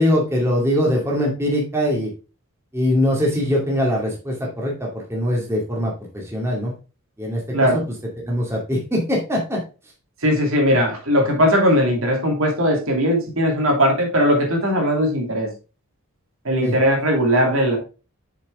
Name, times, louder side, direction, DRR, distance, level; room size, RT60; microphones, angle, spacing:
voice 1, 0.0-2.1 2.7-6.7 7.2-7.8 8.2-9.6 16.6-16.8, left 1 dB, 10° right, -2 dB, 2.3 m, -22 dB
voice 2, 10.2-15.5 16.4-17.8, equal, 70° right, 1 dB, 2.7 m, -19 dB
6.9 x 6.6 x 3.6 m, 0.32 s
head